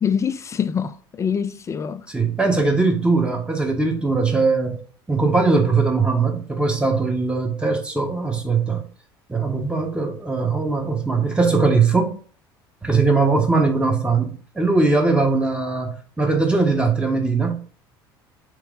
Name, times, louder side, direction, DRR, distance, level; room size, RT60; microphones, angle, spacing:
voice 1, 0.0-2.1, left 7 dB, 25° left, 0.4 m, -24 dB
voice 2, 2.1-4.8 5.1-8.8 9.3-12.2 12.8-17.5, right 3 dB, 10° right, 1.0 m, -20 dB
3.8 x 3.2 x 3.7 m
hypercardioid pair, 65°, 12 cm